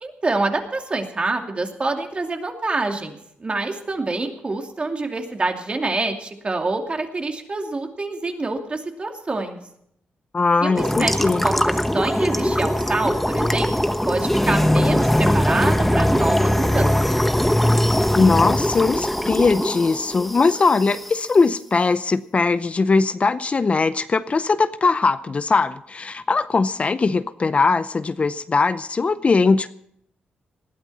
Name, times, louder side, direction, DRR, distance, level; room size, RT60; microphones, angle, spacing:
voice 1, 0.0-9.6 10.6-11.1 11.4-17.2, right 3 dB, 30° right, 4 dB, 2.6 m, -26 dB
voice 2, 10.3-11.5 18.2-29.7, left 4 dB, 35° left, 13 dB, 0.6 m, -20 dB
sound 1, 10.8-21.2, left 1 dB, 5° left, 1.0 m, -21 dB
19.5 x 12.5 x 4.2 m, 0.73 s
cardioid pair, 80°, 4 cm